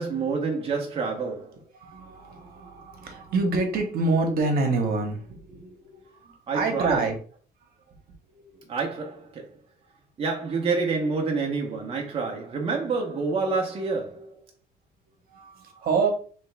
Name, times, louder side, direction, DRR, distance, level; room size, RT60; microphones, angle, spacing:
voice 1, 0.0-1.6 6.5-7.1 8.7-9.5 10.2-14.4, right 4 dB, 35° right, 0.9 m, -28 dB
voice 2, 1.8-7.1 8.4-8.6 15.3-16.1, right 3 dB, 60° right, 1.2 m, -27 dB
3.4 x 3.3 x 3.4 m
cardioid pair, 110°, 17 cm